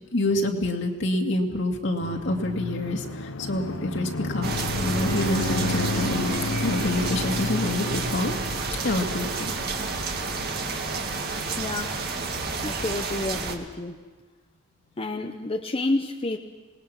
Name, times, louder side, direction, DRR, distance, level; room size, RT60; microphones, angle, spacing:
voice 1, 0.1-6.3 6.6-8.3 8.8-9.5, left 1 dB, 65° left, 2 dB, 2.4 m, -27 dB
sound 1, 2.0-13.0, left 2 dB, 80° left, 1.0 m, -32 dB
sound 2, 4.4-13.5, right 4 dB, 50° right, 2.0 m, -30 dB
voice 2, 11.6-12.0 12.6-14.0 15.0-16.4, left 2 dB, 30° left, 5 dB, 0.9 m, -29 dB
26.5 x 20.0 x 5.9 m, 1.4 s
head